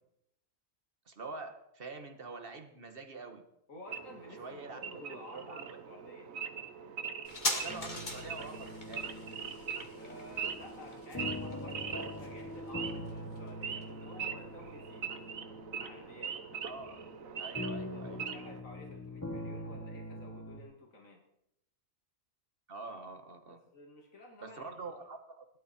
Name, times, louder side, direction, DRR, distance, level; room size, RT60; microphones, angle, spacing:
voice 1, 1.1-3.4 4.4-5.8 7.5-9.1 16.6-17.0 17.4-18.3 22.7-23.6 24.4-25.5, right 3 dB, 45° right, 7 dB, 1.8 m, -45 dB
voice 2, 3.7-6.3 9.9-15.1 15.7-16.4 17.5-21.2 23.5-24.9, left 1 dB, 85° left, 1 dB, 2.9 m, -52 dB
Wild animals / Idling, 3.9-18.6, right 7 dB, 90° right, 1.4 m, -42 dB
sound 1, 7.2-14.3 14.6-14.7, left 2 dB, 35° left, 2.3 m, -41 dB
sound 2, 7.7-20.6, left 1 dB, 15° left, 1.6 m, -44 dB
19.0 x 12.5 x 4.5 m, 0.80 s
omnidirectional pair, 1.3 m